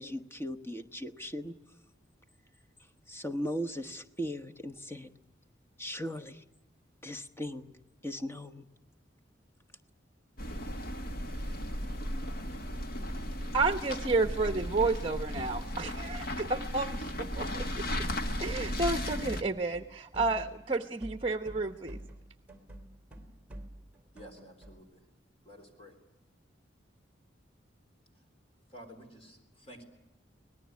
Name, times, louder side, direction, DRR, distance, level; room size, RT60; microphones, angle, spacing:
voice 1, 0.0-1.5 3.1-5.1 5.8-6.4 7.0-7.7 8.0-8.7, equal, 15° left, 8 dB, 1.1 m, -38 dB
sound 1, 10.4-19.4, equal, 55° left, 1.8 m, -35 dB
voice 2, 13.5-18.1 18.4-22.0, right 3 dB, 30° right, 9 dB, 0.9 m, -31 dB
sound 2, 18.0-19.5 19.7-24.8, right 1 dB, 5° right, 2.8 m, -48 dB
voice 3, 24.1-25.0 25.4-26.0 28.7-29.8, equal, 30° left, 4 dB, 3.8 m, -51 dB
25.0 x 19.0 x 9.6 m, 0.91 s
head